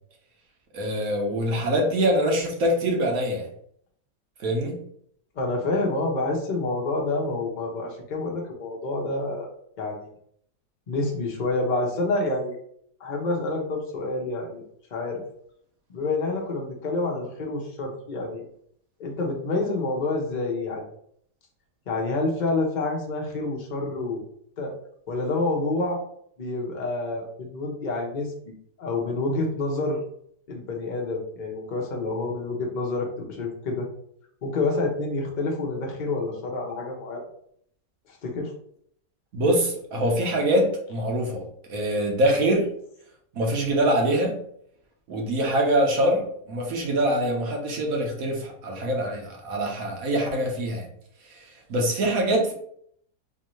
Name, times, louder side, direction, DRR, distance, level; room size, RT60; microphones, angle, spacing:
voice 1, 0.7-3.5 4.4-4.8 39.3-42.7 43.3-44.4 45.1-50.9 51.3-52.5, right 1 dB, 65° right, 0 dB, 1.3 m, -24 dB
voice 2, 5.3-9.5 9.8-10.1 10.9-12.6 13.0-14.6 14.9-15.2 15.9-18.4 19.0-20.8 21.9-24.2 24.6-24.7 25.1-26.0 26.4-28.5 28.8-30.0 30.5-33.9 34.4-37.2 38.1-38.5, left 2 dB, 40° left, -1 dB, 0.8 m, -28 dB
4.5 x 2.7 x 3.1 m, 0.66 s
omnidirectional pair, 1.7 m